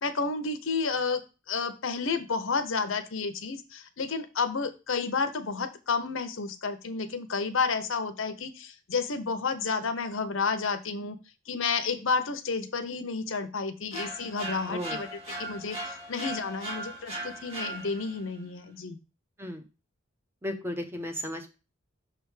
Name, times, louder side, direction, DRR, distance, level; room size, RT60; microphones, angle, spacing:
voice 1, 0.0-1.2 1.5-11.2 11.5-19.0, left 4 dB, 65° left, 9 dB, 0.7 m, -31 dB
sound 1, 13.9-18.3, right 2 dB, 25° right, 1.7 m, -38 dB
voice 2, 20.4-21.6, equal, 10° right, 5 dB, 0.7 m, -34 dB
6.3 x 3.4 x 4.7 m, 0.30 s
head